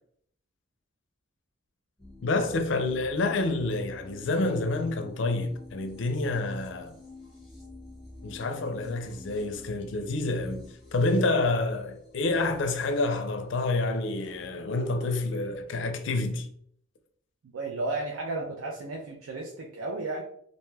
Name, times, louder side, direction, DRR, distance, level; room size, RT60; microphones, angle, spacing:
sound 1, 2.0-14.5, left 2 dB, ahead, 0.8 m, -50 dB
voice 1, 2.2-6.9 8.2-16.5, left 2 dB, 65° left, 0.4 m, -28 dB
voice 2, 17.4-20.2, right 2 dB, 85° right, 0.4 m, -33 dB
2.6 x 2.2 x 3.1 m
head